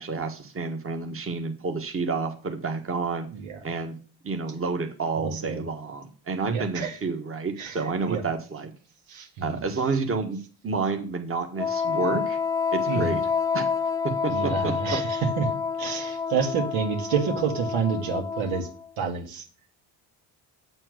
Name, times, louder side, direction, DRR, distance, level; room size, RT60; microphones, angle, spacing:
voice 1, 0.0-3.3 3.6-3.9 4.2-8.7 9.4-10.4 10.6-12.4 12.7-13.2 13.5-13.6 14.0-15.0, right 4 dB, 25° right, 5 dB, 1.5 m, -29 dB
voice 2, 5.2-5.6 6.5-7.0 7.6-7.8 8.1-8.2 9.1-9.6 12.9-13.1 14.3-18.7 19.0-19.4, right 6 dB, 80° right, 3 dB, 2.0 m, -29 dB
Wind instrument woodwind instrument, 11.6-18.9, left 6 dB, 10° left, 0.5 m, -28 dB
7.8 x 4.5 x 6.4 m, 0.38 s
supercardioid pair, 75°, 48 cm